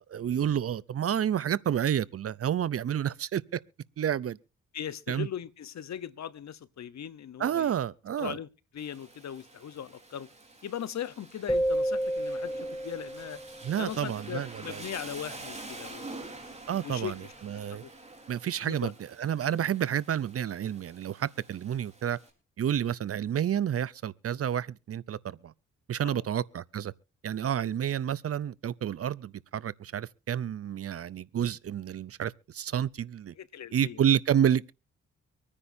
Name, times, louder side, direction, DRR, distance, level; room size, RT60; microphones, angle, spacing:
voice 1, 0.0-3.6 4.0-4.4 5.1-5.3 7.4-8.4 13.6-14.8 16.7-17.8 18.3-22.2 22.6-25.5 25.9-26.9 27.2-33.3 33.7-34.7, right 9 dB, 50° right, 0.5 m, -30 dB
voice 2, 4.7-7.7 8.2-8.5 8.7-10.3 10.6-13.4 13.8-16.2 16.8-17.3 17.5-17.9 18.6-18.9 26.0-26.2 33.4-34.0, left 9 dB, 65° left, 0.9 m, -39 dB
Rain, 8.8-22.3, right 2 dB, 20° right, 3.8 m, -47 dB
sound 1, 11.5-13.7, right 1 dB, 5° left, 0.7 m, -30 dB
25.0 x 9.9 x 2.6 m
cardioid pair, 75°, 30 cm